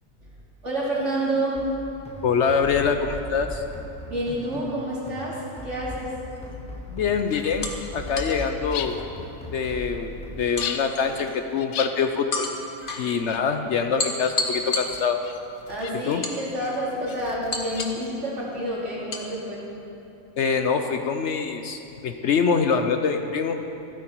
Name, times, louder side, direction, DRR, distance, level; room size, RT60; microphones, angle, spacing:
voice 1, 0.6-1.6 4.0-6.1 15.7-19.6, right 1 dB, 60° right, -5 dB, 3.1 m, -28 dB
sound 1, 1.6-10.3, left 1 dB, 5° left, 1.0 m, -38 dB
voice 2, 2.2-3.6 6.9-9.0 9.5-12.5 13.0-15.2 16.0-16.2 20.4-23.6, left 6 dB, 65° left, 6 dB, 0.9 m, -24 dB
sound 2, 6.3-6.5 7.6-8.4 10.6-11.4 12.3-13.1 14.0-15.4 16.2-16.9 17.5-18.1 19.1-19.3, left 3 dB, 40° left, 1.3 m, -31 dB
sound 3, 7.2-18.9, left 8 dB, 90° left, 1.1 m, -41 dB
15.0 x 12.5 x 4.5 m, 2.9 s
omnidirectional pair, 1.4 m